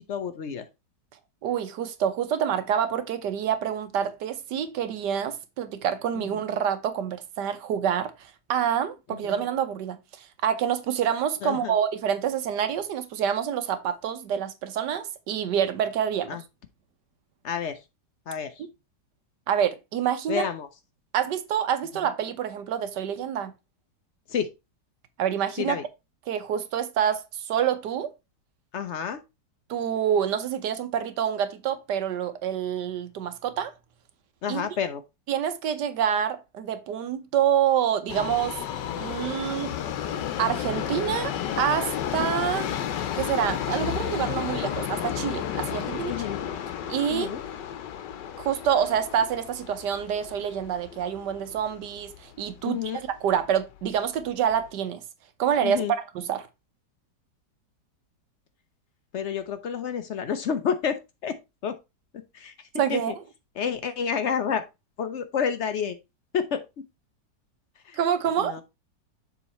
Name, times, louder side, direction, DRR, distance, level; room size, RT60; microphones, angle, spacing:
voice 1, 0.1-0.7 6.2-6.3 9.3-9.4 11.4-11.7 16.3-16.4 17.4-17.8 18.3-18.5 20.3-20.7 24.3-24.5 25.6-25.8 28.7-29.2 34.4-35.0 46.1-46.4 47.1-47.4 52.6-53.0 55.6-55.9 59.1-61.8 62.1-62.5 62.9-63.1 63.6-64.6 65.0-66.0 66.3-66.6 67.9-68.0 68.4-68.6, left 7 dB, 65° left, 0.7 m, -29 dB
voice 2, 1.4-16.4 19.5-20.4 21.1-23.5 25.2-25.8 26.3-28.1 29.7-33.7 34.5-34.6 35.3-38.6 39.0-39.8 40.4-42.7 43.1-46.3 46.9-47.3 48.4-55.0 55.4-55.8 56.1-56.5 62.8-63.2 68.0-68.5, right 9 dB, 75° right, 1.4 m, -27 dB
Subway metro underground, 38.1-52.2 52.5-52.6 53.4-53.5 53.8-53.9 54.6-54.7, left 10 dB, 85° left, 1.4 m, -32 dB
7.2 x 3.7 x 4.2 m
omnidirectional pair, 1.9 m